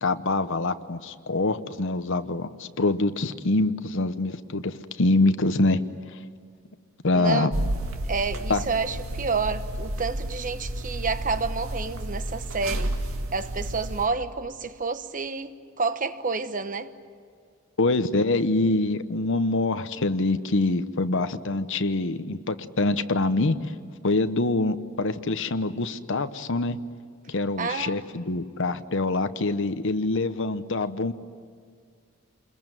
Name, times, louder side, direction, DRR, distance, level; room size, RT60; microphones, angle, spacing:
voice 1, 0.0-5.8 6.1-6.2 7.0-7.5 8.5-8.6 17.8-23.7 24.0-26.8 27.3-31.1, left 2 dB, 60° left, 1.0 m, -25 dB
voice 2, 7.1-7.5 8.1-12.9 13.3-16.9 27.6-27.9, right 4 dB, 40° right, 1.1 m, -29 dB
sound 1, 7.5-14.1, right 1 dB, 80° right, 2.1 m, -31 dB
28.0 x 22.0 x 9.1 m
head